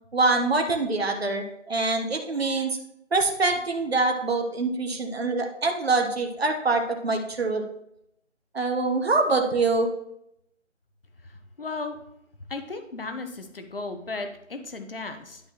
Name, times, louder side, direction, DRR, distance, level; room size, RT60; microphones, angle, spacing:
voice 1, 0.1-2.8 3.1-7.6 8.5-9.9, right 3 dB, 55° right, 4 dB, 1.2 m, -24 dB
voice 2, 11.6-12.0 12.5-15.4, left 3 dB, 45° left, 7 dB, 1.0 m, -35 dB
11.5 x 4.4 x 3.0 m, 0.76 s
figure-of-eight pair, 170°, 38 cm